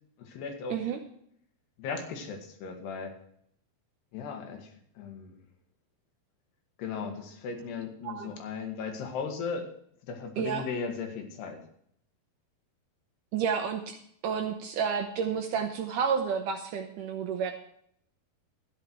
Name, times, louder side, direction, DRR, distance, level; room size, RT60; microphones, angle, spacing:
voice 1, 0.2-0.8 1.8-3.1 4.1-4.7 5.0-5.3 6.8-9.7 10.1-11.6, left 5 dB, 85° left, 4 dB, 3.8 m, -36 dB
voice 2, 10.4-10.7 13.3-14.0 14.2-17.6, right 7 dB, 75° right, 5 dB, 2.0 m, -30 dB
13.5 x 9.9 x 4.6 m, 0.68 s
omnidirectional pair, 4.6 m